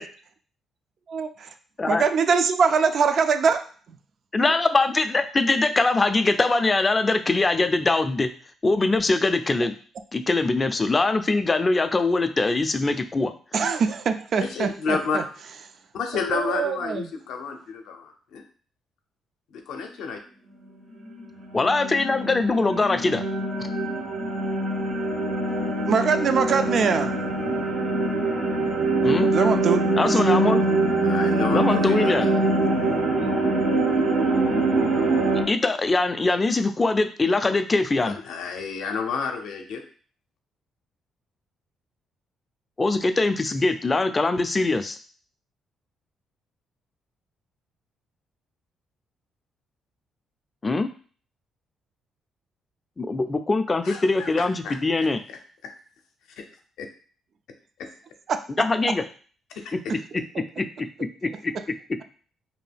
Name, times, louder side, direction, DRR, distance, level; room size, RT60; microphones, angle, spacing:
voice 1, 1.1-1.5 1.9-3.7 4.4-4.5 13.5-15.2 16.1-17.1 25.9-27.1 28.7-28.9 29.3-29.9 32.7-33.3 58.3-58.4, right 5 dB, 55° right, 8 dB, 0.3 m, -23 dB
voice 2, 4.3-8.3 8.6-9.7 10.1-13.3 21.5-23.2 23.6-23.7 29.0-29.3 30.0-30.6 31.5-32.3 35.5-38.2 42.8-45.0 50.6-50.9 53.0-55.2 58.6-59.0 59.7-59.8 60.6-60.7 61.2-61.5, left 3 dB, 25° left, 9 dB, 0.3 m, -22 dB
voice 3, 14.4-15.2 15.9-18.4 19.5-20.2 31.0-32.3 38.0-39.8 53.8-54.8 55.6-55.7 56.4-56.5 56.8-56.9 57.8-57.9 59.6-59.9, left 5 dB, 85° left, 4 dB, 0.5 m, -30 dB
sound 1, 21.0-35.4, right 2 dB, 85° right, 0.8 m, -23 dB
2.6 x 2.2 x 3.3 m, 0.42 s
cardioid pair, 90°, 0 cm